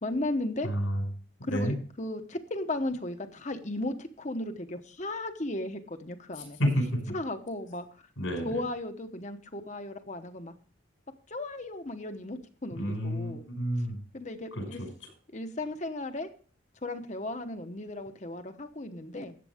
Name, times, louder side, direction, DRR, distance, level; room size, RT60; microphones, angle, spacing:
voice 1, 0.0-0.7 1.5-6.6 7.1-7.9 8.4-10.5 11.3-13.4 14.1-14.8 15.3-16.3 16.8-19.4, left 1 dB, 35° left, 7 dB, 1.0 m, -35 dB
voice 2, 0.6-1.0 1.5-1.7 6.6-6.8 8.2-8.6 12.8-14.0 14.6-14.9, equal, 90° left, 3 dB, 5.3 m, -29 dB
14.0 x 9.0 x 3.6 m, 0.42 s
head